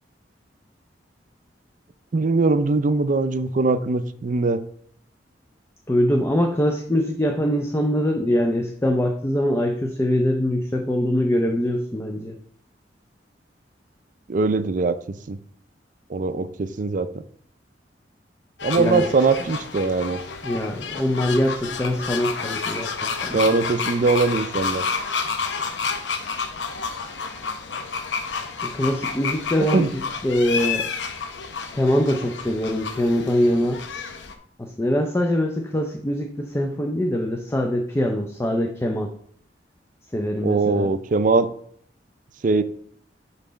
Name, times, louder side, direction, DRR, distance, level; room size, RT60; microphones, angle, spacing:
voice 1, 2.1-4.6 14.3-15.0 15.3-15.4 16.1-17.1 18.6-20.2 23.3-24.8 29.7-29.9 40.4-41.5 42.4-42.6, right 3 dB, 45° right, 12 dB, 0.4 m, -21 dB
voice 2, 5.9-12.4 18.8-19.1 20.4-23.4 28.6-30.9 31.7-33.8 34.6-39.1 40.1-40.9, equal, 15° left, 3 dB, 0.5 m, -23 dB
sound 1, 18.6-34.3, left 5 dB, 90° left, 0.7 m, -30 dB
5.7 x 4.0 x 5.1 m, 0.62 s
head